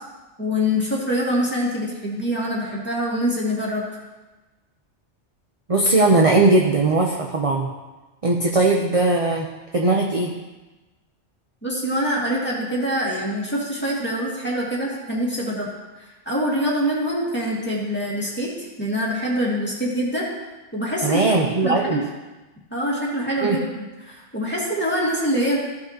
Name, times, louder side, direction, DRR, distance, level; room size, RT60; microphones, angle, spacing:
voice 1, 0.4-3.8 11.6-15.7 16.3-18.5 18.8-20.3 20.7-21.2 21.5-22.0 22.7-23.6 24.1-25.6, equal, 10° left, -5 dB, 2.1 m, -24 dB
voice 2, 5.7-7.7 8.2-10.3 21.0-22.0 23.4-23.6, right 2 dB, 35° right, 0 dB, 0.8 m, -19 dB
14.5 x 5.8 x 2.9 m, 1.1 s
omnidirectional pair, 1.2 m